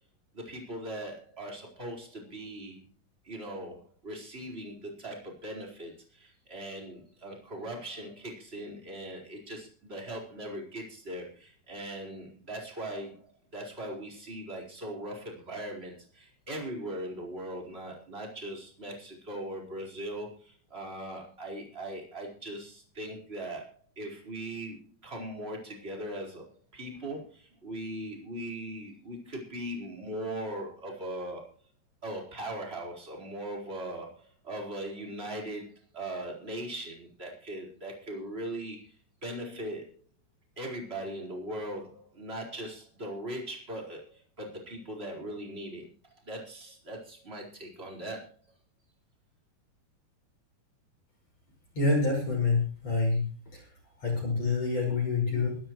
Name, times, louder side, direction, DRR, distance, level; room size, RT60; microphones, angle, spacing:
voice 1, 0.3-2.8 3.2-31.5 32.0-38.9 39.2-40.0 40.6-45.9 46.2-48.4, right 1 dB, 15° right, -1 dB, 4.5 m, -40 dB
voice 2, 51.7-53.2 53.5-53.6 54.0-55.6, left 3 dB, 40° left, -2 dB, 6.7 m, -27 dB
24.0 x 12.5 x 3.1 m, 0.41 s
omnidirectional pair, 4.6 m